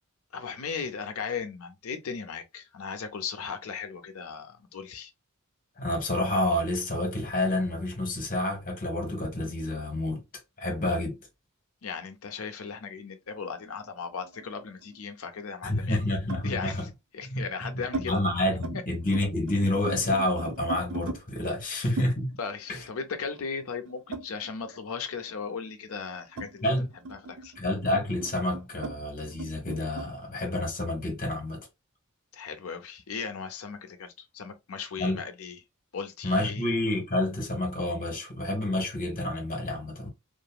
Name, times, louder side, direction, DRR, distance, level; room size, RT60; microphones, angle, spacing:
voice 1, 0.3-5.1 11.8-16.1 16.4-18.2 18.7-18.8 21.7-21.9 22.4-26.7 27.1-27.5 32.3-35.6 35.9-36.7, left 5 dB, 70° left, 0.6 m, -37 dB
voice 2, 5.8-10.2 10.6-11.2 15.6-16.8 17.3-22.4 22.7-22.9 26.6-26.9 27.5-31.6 35.0-35.2 36.2-40.1, left 1 dB, 40° left, 1.2 m, -29 dB
sound 1, 13.4-15.0 16.3-16.5 17.3-18.1 18.4-18.8 19.0-21.2 22.0-24.8 25.1-30.1, right 2 dB, 55° right, 0.4 m, -40 dB
2.9 x 2.5 x 2.3 m
head